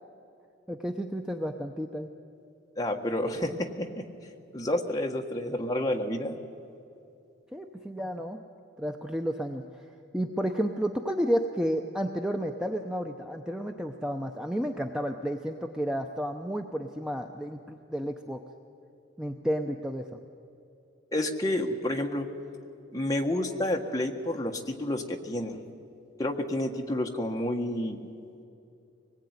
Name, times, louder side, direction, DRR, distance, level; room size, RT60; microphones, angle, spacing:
voice 1, 0.7-2.1 7.5-8.4 8.8-9.8 10.1-18.4 19.2-20.1, equal, 5° right, 4 dB, 0.7 m, -31 dB
voice 2, 2.8-4.0 4.5-6.4 21.1-22.3 22.9-25.6 26.2-28.0, left 1 dB, 20° left, 1 dB, 1.5 m, -29 dB
24.0 x 20.0 x 9.6 m, 2.6 s
head